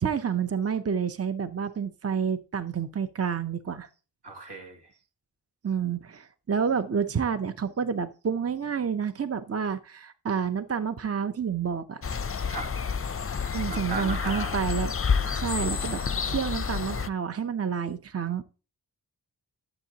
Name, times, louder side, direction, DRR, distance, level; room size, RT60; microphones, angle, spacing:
voice 1, 0.0-3.9 5.6-12.0 13.5-14.9 15.3-16.0 16.2-18.4, right 7 dB, 40° right, 11 dB, 0.7 m, -29 dB
voice 2, 4.2-4.8 12.5-12.7 13.7-14.6, right 2 dB, 90° right, 1 dB, 2.5 m, -36 dB
sound 1, 12.0-17.1, left 6 dB, 35° left, 0.5 m, -29 dB
12.0 x 7.5 x 2.8 m, 0.33 s
wide cardioid pair, 60°, 40 cm